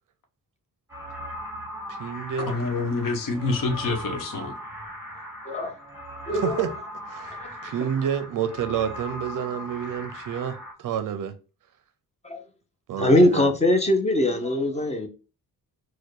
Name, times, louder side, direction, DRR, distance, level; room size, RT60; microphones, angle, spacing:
sound 1, 0.9-10.7, equal, 5° right, 1.3 m, -38 dB
voice 1, 1.9-2.5 6.3-6.7 7.1-7.4 7.6-11.3 12.9-13.5, right 8 dB, 60° right, 0.5 m, -29 dB
voice 2, 2.4-4.5, left 3 dB, 65° left, 1.0 m, -27 dB
voice 3, 6.3-6.6 7.4-7.5 12.2-12.4 13.0-15.1, left 1 dB, 20° left, 0.6 m, -22 dB
4.3 x 2.2 x 4.7 m
wide cardioid pair, 155°, 35 cm